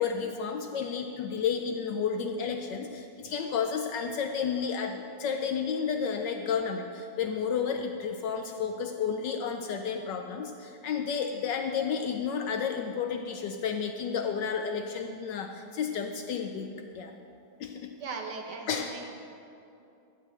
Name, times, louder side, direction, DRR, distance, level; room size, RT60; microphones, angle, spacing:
voice 1, 0.0-16.7 16.9-17.1 17.6-17.9 18.7-18.9, left 6 dB, 70° left, 5 dB, 1.1 m, -31 dB
voice 2, 18.0-19.0, right 4 dB, 65° right, 3 dB, 1.3 m, -38 dB
12.5 x 5.0 x 7.5 m, 2.6 s
omnidirectional pair, 2.3 m